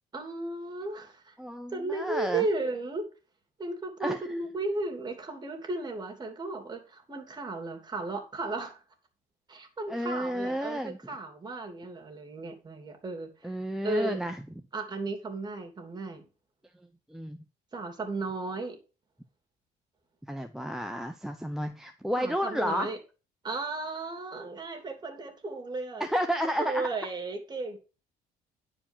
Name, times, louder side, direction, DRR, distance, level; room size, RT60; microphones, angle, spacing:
voice 1, 0.1-1.4 1.7-3.1 3.6-8.8 9.5-13.6 13.8-14.3 14.7-16.2 17.7-18.8 22.2-23.0 23.4-26.1 26.4-27.8, right 3 dB, 25° right, 5 dB, 3.0 m, -35 dB
voice 2, 1.4-2.5 4.0-4.2 9.9-11.0 13.4-14.4 17.1-17.4 20.3-22.9 26.0-26.9, equal, ahead, 7 dB, 0.8 m, -31 dB
10.5 x 4.9 x 7.3 m, 0.33 s
cardioid pair, 110°, 17 cm